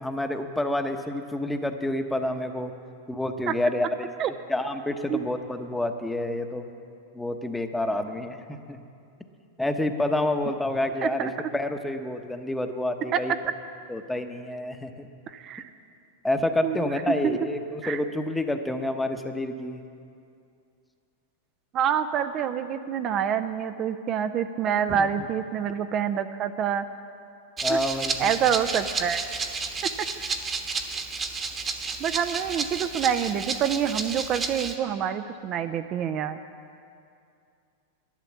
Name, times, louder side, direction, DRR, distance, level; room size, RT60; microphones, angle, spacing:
voice 1, 0.0-2.7 3.1-4.1 4.5-6.6 7.1-8.8 9.6-13.3 13.9-15.1 16.2-19.8 24.9-25.1 27.6-28.4, left 1 dB, 5° left, 7 dB, 1.0 m, -28 dB
voice 2, 11.0-11.3 13.1-13.2 15.3-15.7 16.6-17.4 17.8-18.0 21.7-26.8 27.7-27.8 28.2-29.2 32.0-36.4, right 8 dB, 40° right, 9 dB, 0.5 m, -27 dB
Rattle (instrument), 27.6-34.8, right 4 dB, 25° right, 1.2 m, -31 dB
12.0 x 10.5 x 7.3 m, 2.4 s
hypercardioid pair, 105°, 0 cm